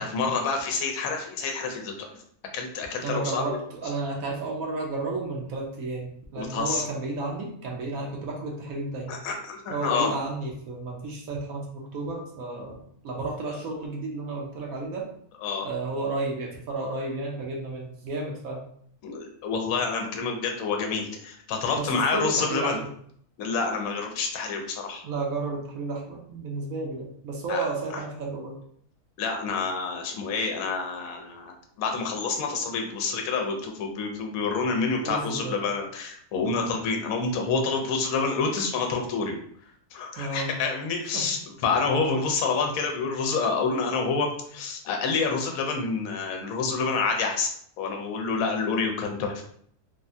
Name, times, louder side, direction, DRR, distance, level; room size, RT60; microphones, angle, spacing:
voice 1, 0.0-2.1 2.5-3.6 6.4-6.8 9.1-10.1 15.4-15.7 19.0-22.8 23.4-25.0 27.5-27.6 27.9-28.0 29.2-39.4 39.9-47.5 47.8-49.4, left 4 dB, 75° left, 3 dB, 1.0 m, -28 dB
voice 2, 3.0-9.2 9.7-12.7 13.0-15.1 15.6-18.6 21.7-22.8 25.0-28.5 35.0-35.6 40.2-40.5 41.1-41.3, right 3 dB, 70° right, -1 dB, 1.0 m, -32 dB
3.4 x 2.1 x 2.6 m, 0.65 s
omnidirectional pair, 1.6 m